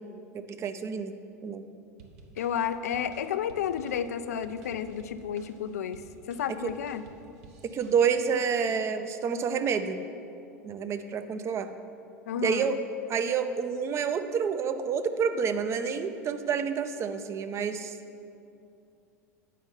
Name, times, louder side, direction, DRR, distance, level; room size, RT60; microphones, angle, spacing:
voice 1, 0.3-1.1 1.4-1.6 6.6-6.7 7.6-10.0 10.6-11.7 12.4-12.8 13.1-18.0, right 6 dB, 30° right, 9 dB, 0.5 m, -28 dB
sound 1, 2.0-8.4, right 4 dB, 60° right, 0.9 m, -53 dB
voice 2, 2.4-6.0 6.3-7.0 12.3-12.7, left 8 dB, 70° left, 12 dB, 0.4 m, -31 dB
8.4 x 5.2 x 5.4 m, 2.6 s
figure-of-eight pair, 80°, 9 cm